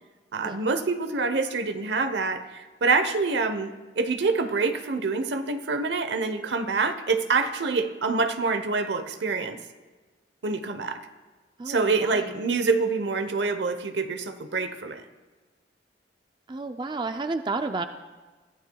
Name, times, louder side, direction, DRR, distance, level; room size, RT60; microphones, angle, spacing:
voice 1, 0.3-9.6 10.4-11.0 11.7-15.0, right 4 dB, 75° right, 10 dB, 0.9 m, -26 dB
voice 2, 11.6-12.3 16.5-17.9, right 3 dB, 25° right, 7 dB, 0.4 m, -31 dB
21.5 x 15.0 x 2.3 m, 1.3 s
head